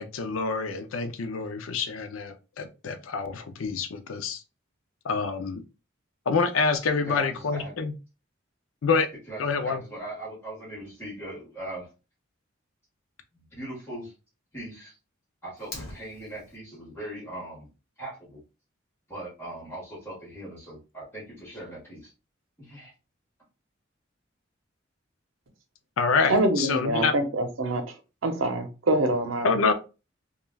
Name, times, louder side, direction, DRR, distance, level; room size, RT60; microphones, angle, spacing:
voice 1, 0.0-4.4 5.0-5.6 6.3-8.0 8.8-9.1 9.4-9.8 26.0-27.1 29.4-29.7, left 4 dB, 85° left, 8 dB, 0.5 m, -26 dB
voice 2, 7.0-7.7 9.3-11.8 13.6-14.1 14.5-14.9 15.4-17.7 18.0-18.4 19.1-22.0 22.7-22.9, right 1 dB, 10° left, -7 dB, 1.4 m, -39 dB
Fire, 15.6-16.6, left 2 dB, 55° left, 1.0 m, -42 dB
voice 3, 26.3-27.8 28.2-29.5, right 1 dB, 85° right, 7 dB, 0.6 m, -25 dB
3.1 x 2.3 x 2.2 m, 0.30 s
head